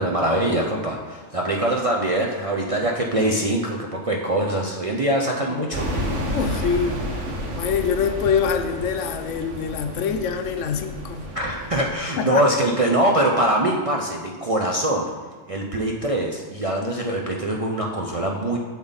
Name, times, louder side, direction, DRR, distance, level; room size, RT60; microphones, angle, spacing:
voice 1, 0.0-5.9 11.3-15.1 15.5-18.6, right 1 dB, 40° right, -1 dB, 0.5 m, -23 dB
sound 1, 5.7-11.9, equal, 70° right, 1.4 m, -30 dB
voice 2, 6.3-7.0 7.6-11.3 12.1-12.5, left 6 dB, 75° left, 7 dB, 1.0 m, -25 dB
7.1 x 6.8 x 4.0 m, 1.5 s
omnidirectional pair, 1.3 m